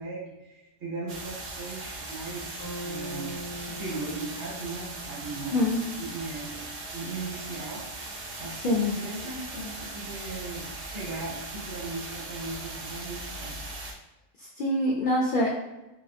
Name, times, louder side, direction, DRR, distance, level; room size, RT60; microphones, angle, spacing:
voice 1, 0.0-5.5 6.0-6.6 6.9-7.9 8.2-8.6 9.0-13.6, right 3 dB, 70° right, -6 dB, 1.4 m, -38 dB
sound 1, 1.1-13.9, right 2 dB, 85° right, 0.3 m, -39 dB
Bass guitar, 2.6-6.7, right 1 dB, 20° left, 1.5 m, -42 dB
voice 2, 5.5-5.8 8.6-8.9 14.4-15.5, left 1 dB, 60° left, -4 dB, 0.5 m, -25 dB
2.7 x 2.5 x 2.3 m, 0.99 s
omnidirectional pair, 1.2 m